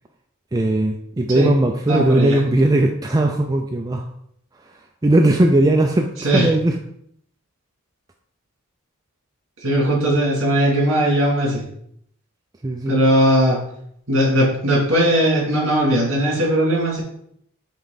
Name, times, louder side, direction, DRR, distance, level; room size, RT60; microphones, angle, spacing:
voice 1, 0.5-4.1 5.0-6.8 12.6-13.0, right 1 dB, 15° right, 2 dB, 0.3 m, -18 dB
voice 2, 1.9-2.4 6.2-6.5 9.6-11.6 12.9-13.6 14.1-17.0, right 1 dB, 60° right, -3 dB, 2.7 m, -18 dB
8.0 x 3.2 x 4.0 m, 0.69 s
head